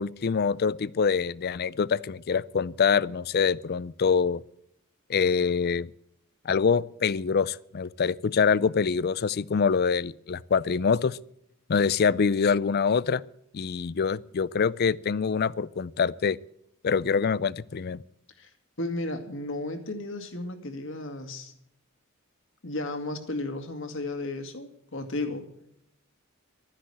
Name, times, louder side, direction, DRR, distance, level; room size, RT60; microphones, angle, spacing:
voice 1, 0.0-4.4 5.1-5.9 6.5-11.2 11.7-13.2 13.5-16.4 16.8-18.0, left 6 dB, 50° left, 0.4 m, -25 dB
voice 2, 18.8-21.5 22.6-25.5, left 2 dB, 65° left, 2.2 m, -34 dB
13.0 x 10.0 x 7.6 m
head